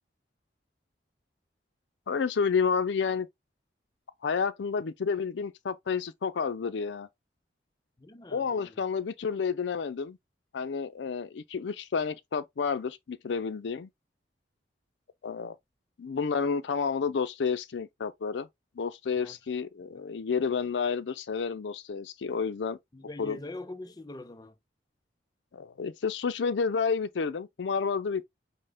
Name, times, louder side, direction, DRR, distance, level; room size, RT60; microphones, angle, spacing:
voice 1, 2.1-3.3 4.2-7.1 8.3-10.2 10.5-13.9 15.2-15.6 16.0-18.5 18.8-22.8 23.2-23.4 25.5-28.2, left 5 dB, 80° left, 0.4 m, -30 dB
voice 2, 8.0-8.8 19.2-19.4 22.9-24.6, left 2 dB, 20° left, 0.5 m, -43 dB
5.4 x 2.1 x 3.5 m
head